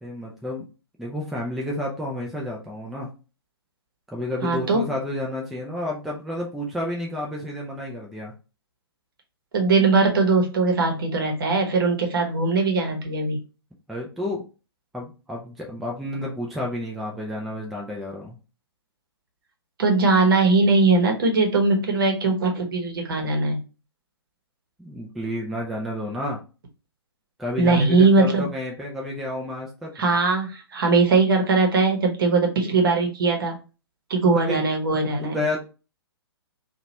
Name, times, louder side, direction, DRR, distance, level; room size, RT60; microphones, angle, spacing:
voice 1, 0.0-0.6 1.0-3.1 4.1-8.3 13.9-14.5 14.9-18.4 24.8-26.4 27.4-29.9 34.3-34.6 35.3-35.6, left 1 dB, ahead, -2 dB, 0.3 m, -30 dB
voice 2, 4.4-4.8 9.5-13.4 19.8-23.6 27.6-28.4 30.0-33.6 34.1-35.4, right 3 dB, 55° right, 2 dB, 0.9 m, -20 dB
2.8 x 2.3 x 2.8 m, 0.32 s
figure-of-eight pair, 120°, 14 cm